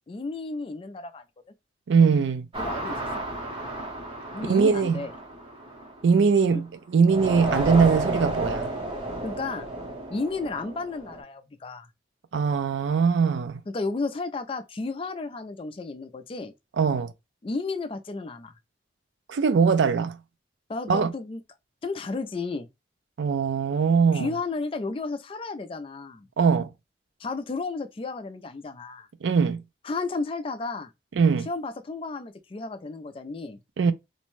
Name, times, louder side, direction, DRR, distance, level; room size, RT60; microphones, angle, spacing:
voice 1, 0.1-1.2 2.6-3.2 4.3-5.1 6.4-6.6 9.2-9.7 10.1-11.9 13.7-16.5 17.4-18.5 20.7-21.4 21.8-22.7 24.1-26.3 27.2-29.1 29.8-30.9 31.5-33.6, left 3 dB, 30° left, 0.3 m, -33 dB
voice 2, 1.9-2.5 4.4-5.0 6.0-8.7 12.3-13.6 16.8-17.1 19.3-20.2 20.9-21.1 23.2-24.3 26.4-26.7 29.2-29.6 31.2-31.5 33.8-33.9, right 5 dB, 85° right, 0.4 m, -21 dB
sound 1, 2.5-6.5 7.1-11.2, right 2 dB, 30° right, 0.7 m, -32 dB
2.6 x 2.1 x 3.0 m
head